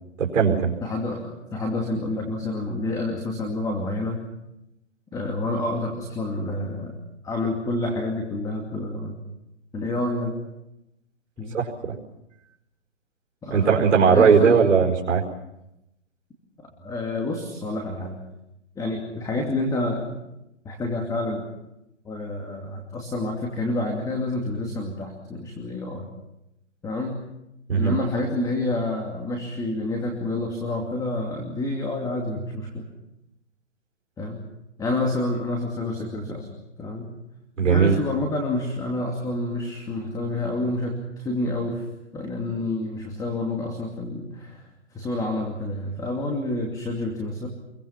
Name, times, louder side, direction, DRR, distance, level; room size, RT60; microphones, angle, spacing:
voice 1, 0.2-0.7 11.5-11.9 13.5-15.2 27.7-28.0 37.6-38.0, right 6 dB, 75° right, -1 dB, 5.0 m, -18 dB
voice 2, 0.8-4.2 5.1-6.9 7.2-9.2 9.7-10.3 11.4-11.6 13.4-14.6 16.8-18.2 18.8-20.0 20.6-21.5 22.0-26.1 26.8-27.2 27.7-32.9 34.2-34.4 34.8-36.5 36.8-37.1 37.6-41.8 42.1-44.6 44.9-47.5, left 2 dB, 10° left, 2 dB, 2.6 m, -28 dB
29.5 x 23.0 x 5.9 m, 0.86 s
hypercardioid pair, 155°, 37 cm